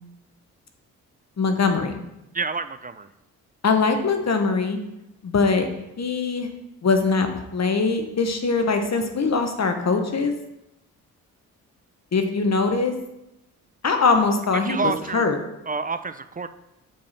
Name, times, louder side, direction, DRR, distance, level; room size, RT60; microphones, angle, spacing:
voice 1, 1.4-2.0 3.6-4.8 5.2-5.7 6.0-6.5 6.8-7.3 7.5-10.3 12.1-12.9 13.8-15.4, left 4 dB, 40° left, 6 dB, 1.2 m, -22 dB
voice 2, 2.3-3.1 14.6-15.3 15.7-16.5, right 4 dB, 20° right, 11 dB, 0.4 m, -28 dB
7.1 x 4.8 x 4.3 m, 0.90 s
hypercardioid pair, 45°, 40 cm